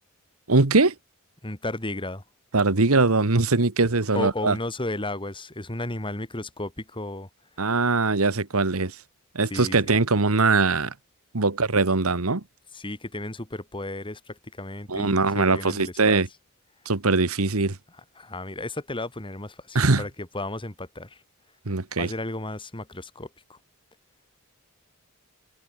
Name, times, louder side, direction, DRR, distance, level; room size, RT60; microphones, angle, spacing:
voice 1, 0.5-0.9 2.5-4.6 7.6-9.0 9.3-10.9 11.3-12.4 14.9-16.3 16.8-17.8 19.7-20.0 21.6-22.1, right 3 dB, 75° right, 1.5 m, -21 dB
voice 2, 1.4-2.2 4.1-7.3 9.5-9.9 12.7-16.2 18.2-21.2 22.0-23.6, left 2 dB, 25° left, 2.7 m, -34 dB
head